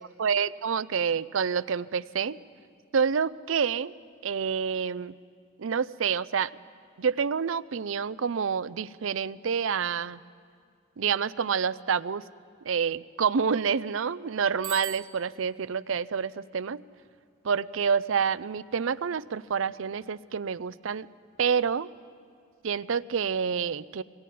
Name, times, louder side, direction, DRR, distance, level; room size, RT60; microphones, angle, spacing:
voice 1, 0.2-2.4 2.9-3.9 4.2-5.1 5.6-6.5 7.0-10.2 11.0-12.2 12.6-16.8 17.4-21.1 21.4-21.9 22.6-24.0, right 6 dB, 75° right, 16 dB, 0.5 m, -28 dB
Bicycle bell, 14.6-15.6, right 11 dB, 25° right, 1.1 m, -40 dB
23.0 x 19.5 x 9.4 m, 2.2 s
head